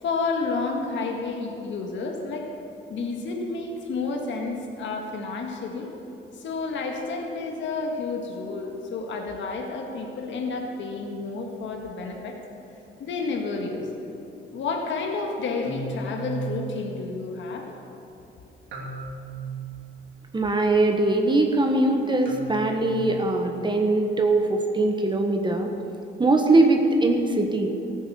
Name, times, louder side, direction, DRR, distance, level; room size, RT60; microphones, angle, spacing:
voice 1, 0.0-2.5 2.9-5.9 6.3-12.4 13.0-13.9 14.5-17.7, left 4 dB, 70° left, 2 dB, 1.7 m, -30 dB
sound 1, 13.6-13.9 15.6-17.5 18.7-20.4 22.3-23.8, right 5 dB, 70° right, 2.8 m, -37 dB
voice 2, 20.3-25.7 26.2-27.7, right 2 dB, 25° right, 3 dB, 1.3 m, -21 dB
14.5 x 9.3 x 6.9 m, 2.9 s
cardioid pair, 90°, 20 cm